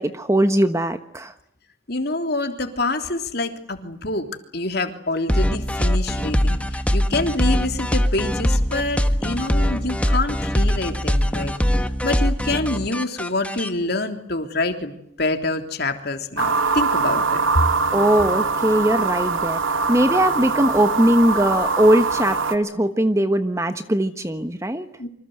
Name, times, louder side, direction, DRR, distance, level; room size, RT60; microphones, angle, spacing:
voice 1, 0.0-1.3 17.9-19.6 19.9-24.9, right 1 dB, 15° right, 9 dB, 1.2 m, -20 dB
voice 2, 1.9-4.3 4.5-14.9 15.2-17.4 25.0-25.1, left 2 dB, 50° left, 6 dB, 3.3 m, -26 dB
sound 1, 5.3-13.7, equal, 5° left, 1.4 m, -22 dB
sound 2, 16.4-22.6, right 4 dB, 80° right, 2.3 m, -22 dB
28.0 x 25.5 x 8.0 m, 0.70 s
head